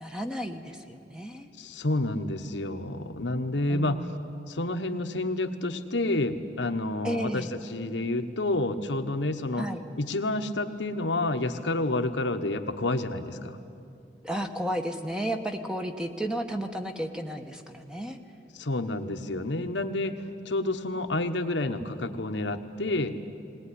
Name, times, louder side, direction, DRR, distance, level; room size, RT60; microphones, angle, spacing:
voice 1, 0.0-1.5 3.7-4.3 7.0-7.5 9.5-9.8 14.2-18.2 19.3-19.5, right 1 dB, 5° right, 5 dB, 1.0 m, -33 dB
voice 2, 1.6-4.0 4.5-9.7 10.0-13.6 18.5-23.1, left 2 dB, 85° left, 7 dB, 1.2 m, -29 dB
20.0 x 19.5 x 9.9 m, 2.6 s
head